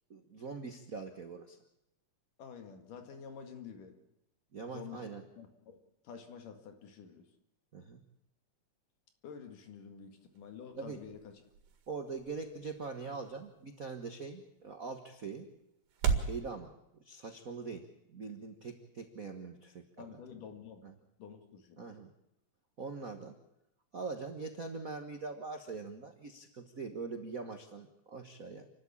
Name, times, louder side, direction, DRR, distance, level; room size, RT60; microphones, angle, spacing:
voice 1, 0.1-1.6 4.5-5.2 7.7-8.0 10.8-11.0 11.9-15.5 16.2-16.7 17.0-20.2 20.8-20.9 21.8-22.1 22.8-23.4 23.9-28.7, right 4 dB, 70° right, 6 dB, 0.8 m, -43 dB
voice 2, 2.4-4.0 4.7-5.1 5.4-5.8 6.0-7.3 9.2-11.4 20.0-20.9 21.2-21.9, left 7 dB, 75° left, 6 dB, 3.6 m, -49 dB
sound 1, 10.1-16.4, right 6 dB, 90° right, 3.7 m, -39 dB
28.5 x 12.5 x 8.6 m, 0.85 s
omnidirectional pair, 3.8 m